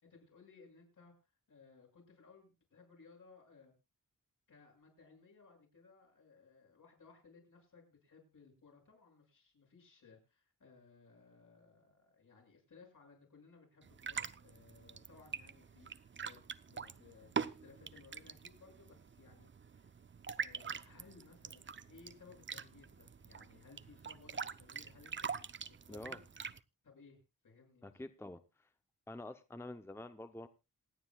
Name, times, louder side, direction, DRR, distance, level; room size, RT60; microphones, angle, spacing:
voice 1, 0.0-3.7 4.5-20.0 20.4-25.6 25.9-26.2 26.8-27.9, left 4 dB, 65° left, 0 dB, 6.6 m, -61 dB
sound 1, 13.8-26.6, right 6 dB, 35° right, 0.6 m, -44 dB
voice 2, 25.9-26.2 27.8-28.7 29.1-30.5, left 1 dB, 5° left, 9 dB, 0.7 m, -47 dB
27.0 x 9.4 x 2.3 m, 0.26 s
wide cardioid pair, 130°, 33 cm